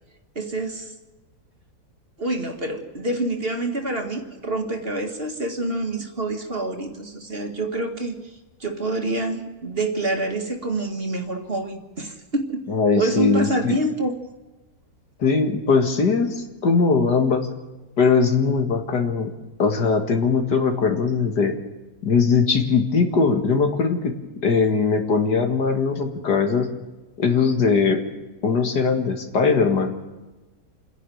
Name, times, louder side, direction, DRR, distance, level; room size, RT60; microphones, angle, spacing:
voice 1, 0.4-0.9 2.2-8.3 8.6-12.6 12.9-14.1, right 2 dB, 35° right, 5 dB, 2.1 m, -27 dB
voice 2, 12.7-13.8 15.2-17.5 18.0-19.3 19.6-21.5 22.0-24.1 24.4-26.7 27.2-28.0 28.4-29.9, left 5 dB, 75° left, 6 dB, 2.5 m, -20 dB
27.0 x 11.0 x 9.3 m, 1.2 s
omnidirectional pair, 1.8 m